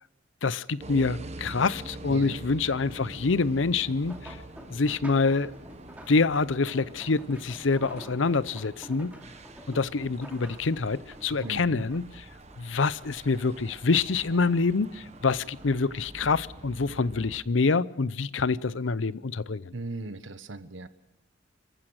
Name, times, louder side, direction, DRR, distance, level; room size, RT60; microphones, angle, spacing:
voice 1, 0.4-4.4 4.7-5.5 6.1-9.1 9.7-12.2 12.6-19.8, left 4 dB, 85° left, 0.7 m, -26 dB
sound 1, 0.8-17.4, right 2 dB, 35° right, 1.3 m, -46 dB
voice 2, 2.1-2.4 11.4-11.8 19.7-20.9, right 2 dB, 80° right, 1.3 m, -37 dB
sound 2, 3.8-13.4 13.7-14.7 15.0-16.4 17.1-17.4 17.8-17.9, equal, 10° right, 3.0 m, -48 dB
26.5 x 15.0 x 6.4 m
head